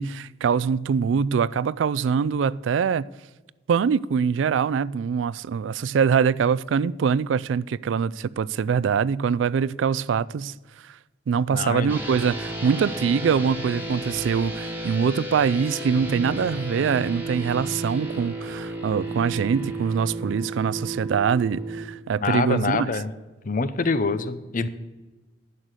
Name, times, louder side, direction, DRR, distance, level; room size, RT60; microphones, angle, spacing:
voice 1, 0.0-3.0 3.7-10.5 11.3-22.9, right 6 dB, 90° right, 0.3 m, -23 dB
voice 2, 11.5-12.0 22.2-23.1 23.4-24.7, left 4 dB, 45° left, 0.7 m, -25 dB
sound 1, 11.9-21.8, right 2 dB, 10° right, 1.7 m, -33 dB
11.0 x 6.5 x 8.1 m
head